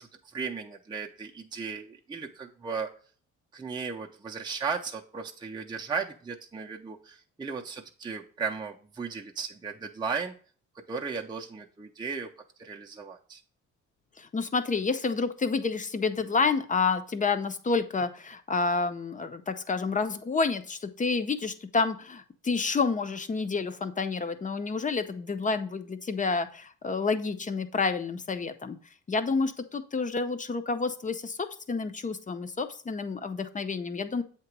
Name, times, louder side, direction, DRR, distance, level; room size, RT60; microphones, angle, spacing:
voice 1, 0.0-2.9 3.5-10.3 10.9-12.3 12.6-13.4, right 5 dB, 15° right, 1 dB, 0.6 m, -36 dB
voice 2, 14.2-28.8 29.1-34.2, left 4 dB, 25° left, 9 dB, 0.6 m, -29 dB
7.7 x 2.9 x 4.6 m, 0.44 s
cardioid pair, 90°, 30 cm